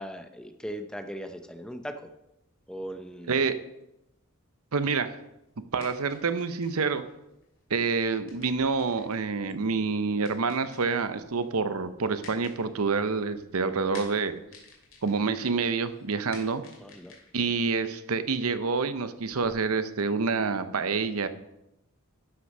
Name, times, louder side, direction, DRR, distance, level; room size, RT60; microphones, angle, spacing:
voice 1, 0.0-2.0 2.7-3.5 16.8-17.1, equal, 5° left, 7 dB, 0.6 m, -38 dB
voice 2, 4.7-5.2 5.7-7.0 7.7-14.4 15.0-16.6 17.3-21.3, right 4 dB, 80° right, 11 dB, 0.7 m, -27 dB
sound 1, 5.5-19.5, left 4 dB, 60° left, 2.8 m, -54 dB
12.0 x 6.1 x 5.4 m, 0.89 s
head